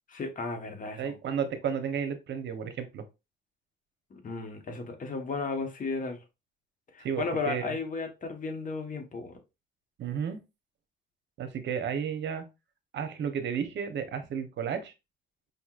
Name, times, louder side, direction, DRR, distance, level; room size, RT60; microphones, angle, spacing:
voice 1, 0.1-1.2 4.1-6.2 6.9-9.4, left 4 dB, 40° left, 4 dB, 1.2 m, -34 dB
voice 2, 1.0-3.0 7.0-7.8 10.0-10.4 11.4-12.4 12.9-14.9, right 7 dB, 65° right, 9 dB, 0.9 m, -32 dB
5.1 x 2.9 x 2.4 m, 0.26 s
cardioid pair, 90°, 20 cm